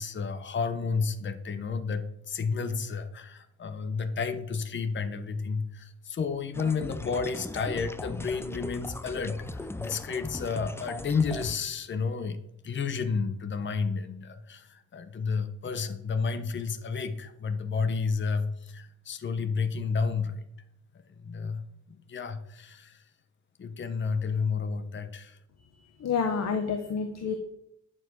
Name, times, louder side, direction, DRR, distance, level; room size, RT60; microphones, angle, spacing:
voice 1, 0.0-12.4 12.6-20.5 21.2-23.0 23.6-25.4, left 5 dB, 35° left, 9 dB, 1.0 m, -31 dB
sound 1, 6.5-11.6, left 2 dB, 10° left, 0.4 m, -39 dB
voice 2, 26.0-27.3, left 6 dB, 55° left, 5 dB, 1.3 m, -28 dB
10.5 x 7.1 x 6.3 m, 0.76 s
wide cardioid pair, 160°, 32 cm